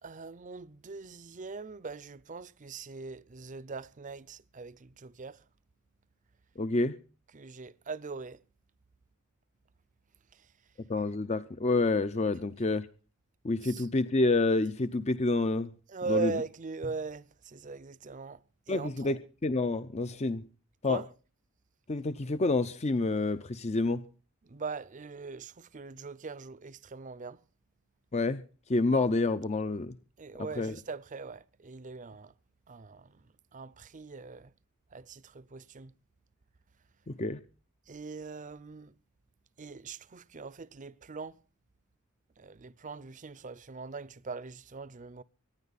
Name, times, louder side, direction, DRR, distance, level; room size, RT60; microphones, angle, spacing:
voice 1, 0.0-5.5 7.3-8.4 10.3-10.7 13.6-13.9 15.9-19.2 20.8-21.1 24.4-27.4 30.2-32.3 32.7-34.5 34.9-35.9 37.9-39.0 39.6-41.4 42.4-45.2, right 4 dB, 40° right, 0.6 m, -41 dB
voice 2, 6.6-7.0 10.9-12.9 13.4-15.7 16.1-16.3 18.7-20.4 20.8-21.0 21.9-24.0 28.1-28.4 28.7-30.0 30.6-30.7 37.1-37.4, left 2 dB, 35° left, 0.6 m, -28 dB
24.5 x 10.0 x 4.1 m
head